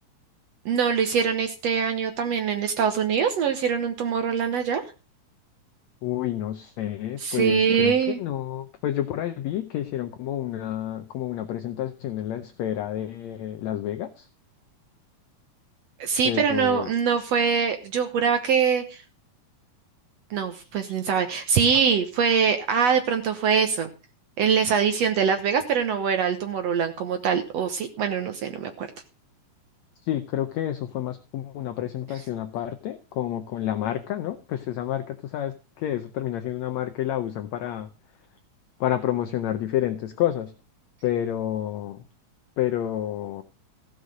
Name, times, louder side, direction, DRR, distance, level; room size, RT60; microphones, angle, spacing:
voice 1, 0.7-4.8 7.2-8.2 16.0-19.0 20.3-23.9 24.4-28.9, right 7 dB, 65° right, 8 dB, 1.8 m, -23 dB
voice 2, 6.0-14.3 16.2-16.9 20.8-20.9 30.0-37.9 38.8-40.5 41.0-42.0 42.6-43.4, left 12 dB, 80° left, 9 dB, 1.6 m, -29 dB
15.0 x 6.5 x 6.4 m, 0.33 s
omnidirectional pair, 3.9 m